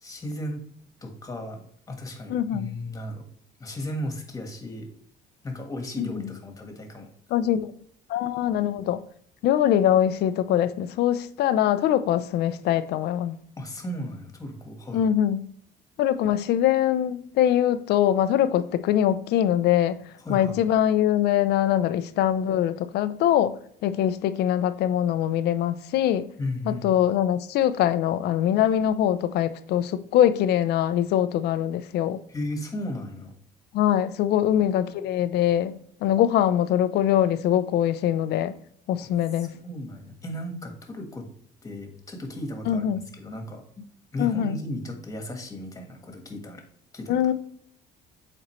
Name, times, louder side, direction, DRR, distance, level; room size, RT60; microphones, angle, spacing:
voice 1, 0.0-0.6 1.0-3.2 3.6-4.9 5.4-7.1 13.6-15.0 20.2-20.6 26.4-27.0 32.3-33.3 39.4-41.3 41.6-43.8 44.1-46.6 46.9-47.2, left 1 dB, 20° left, 1.5 m, -35 dB
voice 2, 2.3-2.7 6.0-6.3 7.3-7.7 8.1-9.0 9.4-13.4 14.9-15.5 16.0-20.0 20.3-26.3 26.7-32.2 33.7-38.5 38.9-39.5 42.7-43.0 44.2-44.6 47.1-47.3, left 11 dB, 75° left, 0.5 m, -23 dB
7.5 x 4.3 x 3.1 m
cardioid pair, 110°, 17 cm